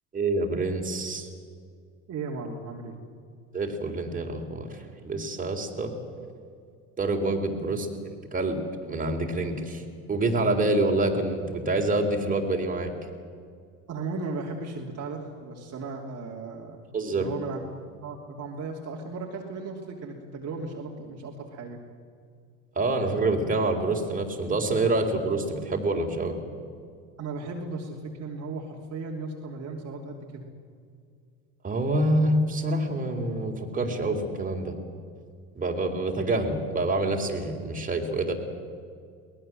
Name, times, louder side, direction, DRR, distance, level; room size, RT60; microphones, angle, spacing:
voice 1, 0.1-1.3 3.5-5.9 7.0-7.9 8.3-9.8 10.1-12.9 16.9-17.3 22.8-26.4 31.6-34.7 35.5-38.3, right 2 dB, 20° right, 2 dB, 4.0 m, -26 dB
voice 2, 2.1-3.0 7.6-7.8 13.9-16.8 17.1-17.6 18.0-21.8 27.2-30.5, right 3 dB, 35° right, -1 dB, 3.1 m, -36 dB
23.0 x 19.0 x 7.8 m, 2.2 s
hypercardioid pair, 90°, 42 cm